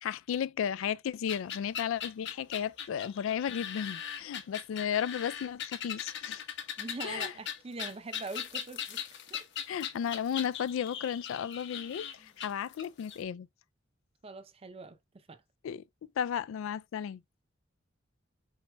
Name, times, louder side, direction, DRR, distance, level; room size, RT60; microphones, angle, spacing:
voice 1, 0.0-6.4 7.0-7.3 9.7-13.5 15.6-15.8 16.2-17.2, left 8 dB, 75° left, 0.3 m, -34 dB
sound 1, 1.3-13.2, left 9 dB, 60° left, 0.9 m, -39 dB
voice 2, 6.8-9.5 14.2-15.4, right 3 dB, 30° right, 0.5 m, -43 dB
4.5 x 4.2 x 2.2 m
head